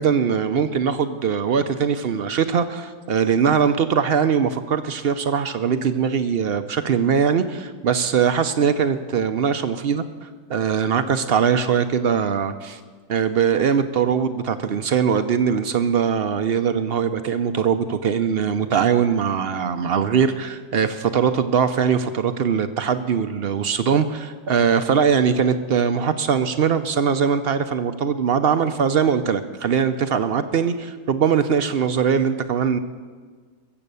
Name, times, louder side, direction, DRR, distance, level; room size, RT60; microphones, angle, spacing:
voice 1, 0.0-12.8 13.1-32.8, right 7 dB, 60° right, 10 dB, 0.6 m, -21 dB
21.5 x 7.8 x 6.8 m, 1.5 s
omnidirectional pair, 1.7 m